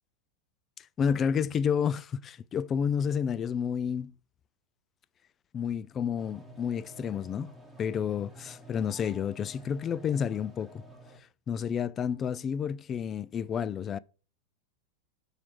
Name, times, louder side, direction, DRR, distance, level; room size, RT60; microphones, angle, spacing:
voice 1, 1.0-4.1 5.5-7.5 7.8-10.8 11.5-14.0, left 7 dB, 25° left, 0.3 m, -30 dB
sound 1, 6.2-11.2, right 1 dB, ahead, 1.2 m, -51 dB
5.9 x 4.9 x 4.7 m
figure-of-eight pair, 90°, 0 cm